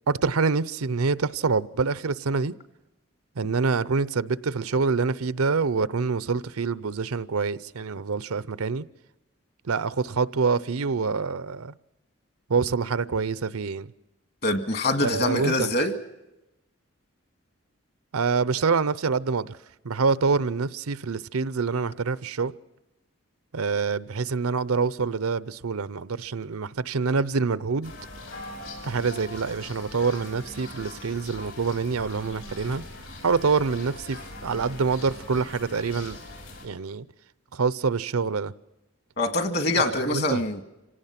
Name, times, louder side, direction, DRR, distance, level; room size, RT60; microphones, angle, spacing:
voice 1, 0.1-2.5 3.4-8.8 9.6-11.7 12.5-13.9 15.0-15.7 18.1-19.6 19.8-22.5 23.5-27.9 28.8-32.8 33.2-36.2 36.6-37.0 37.5-38.5 39.8-40.4, right 4 dB, 90° right, 0.7 m, -26 dB
voice 2, 14.4-15.9 39.2-40.6, left 2 dB, 50° left, 1.8 m, -24 dB
sound 1, 27.8-36.7, left 2 dB, 70° left, 6.4 m, -41 dB
26.5 x 17.5 x 5.9 m
head